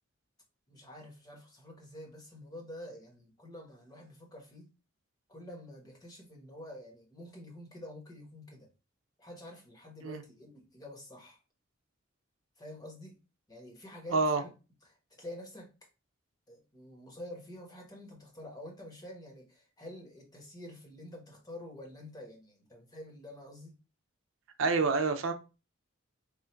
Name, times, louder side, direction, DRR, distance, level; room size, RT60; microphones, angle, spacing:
voice 1, 0.7-4.7 5.3-8.7 9.2-11.4 12.6-13.2 13.5-14.5 14.9-15.7 16.5-23.7, left 1 dB, 20° left, 1.2 m, -48 dB
voice 2, 14.1-14.4 24.6-25.3, right 4 dB, 75° right, 0.6 m, -27 dB
3.7 x 2.5 x 4.4 m
head